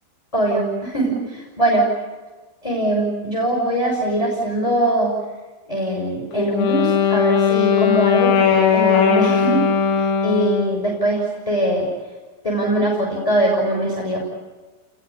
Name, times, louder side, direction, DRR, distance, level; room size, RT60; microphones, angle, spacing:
voice 1, 0.3-1.9 2.6-5.1 5.7-9.7 10.2-11.9 12.4-14.2, right 1 dB, 5° left, -1 dB, 5.6 m, -21 dB
Wind instrument woodwind instrument, 6.3-10.9, left 8 dB, 85° left, 6.1 m, -18 dB
29.5 x 21.5 x 8.4 m, 1.3 s
omnidirectional pair, 5.9 m